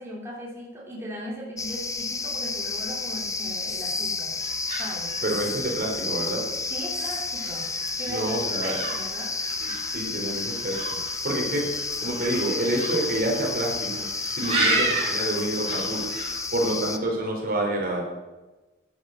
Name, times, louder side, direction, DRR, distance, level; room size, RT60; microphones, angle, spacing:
voice 1, 0.0-4.3 4.8-5.2 6.7-7.7 8.0-9.3 14.4-14.8 16.6-16.7, equal, 15° right, -4 dB, 3.2 m, -37 dB
sound 1, 1.6-17.0, left 4 dB, 15° left, 0.9 m, -31 dB
sound 2, 4.4-16.4, right 2 dB, 35° right, 5.4 m, -34 dB
voice 2, 5.2-6.4 8.1-8.8 9.6-11.0 11.2-16.0 16.5-18.0, right 1 dB, 50° right, -1 dB, 3.9 m, -28 dB
11.5 x 11.5 x 6.4 m, 1.1 s
head